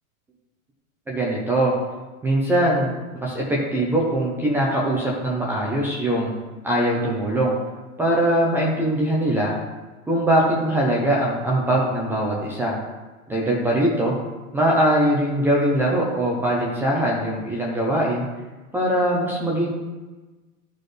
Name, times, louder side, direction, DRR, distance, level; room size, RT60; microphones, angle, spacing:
voice 1, 1.1-1.7 2.2-6.3 6.6-7.5 8.0-9.5 10.1-12.7 13.3-14.1 14.5-18.3 18.7-19.8, right 1 dB, 5° right, -4 dB, 0.5 m, -21 dB
13.0 x 4.4 x 3.2 m, 1.2 s
supercardioid pair, 155°, 43 cm